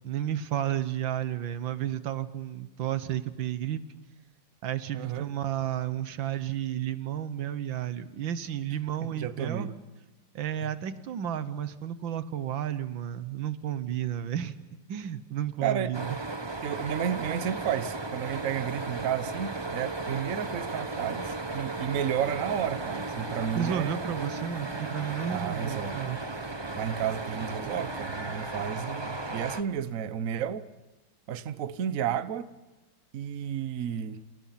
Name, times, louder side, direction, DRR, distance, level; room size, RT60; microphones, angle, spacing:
voice 1, 0.0-3.8 4.6-9.7 10.4-14.5 14.9-16.2 23.6-26.2, right 10 dB, 85° right, 1.9 m, -32 dB
voice 2, 4.9-5.3 9.0-9.7 10.6-10.7 15.6-15.9 16.6-24.0 25.3-26.0 26.7-30.7 31.3-32.5 33.1-34.2, right 9 dB, 50° right, 1.2 m, -32 dB
sound 1, 15.9-29.6, right 2 dB, 20° right, 0.8 m, -35 dB
28.5 x 28.5 x 5.8 m
omnidirectional pair, 2.0 m